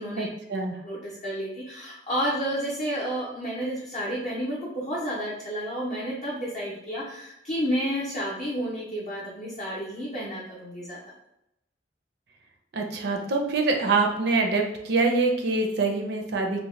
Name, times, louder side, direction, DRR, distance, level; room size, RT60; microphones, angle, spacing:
voice 1, 0.2-0.8 12.7-16.6, right 3 dB, 60° right, 2 dB, 0.4 m, -25 dB
voice 2, 0.8-11.0, equal, 40° left, -6 dB, 0.6 m, -31 dB
2.7 x 2.0 x 3.0 m, 0.83 s
head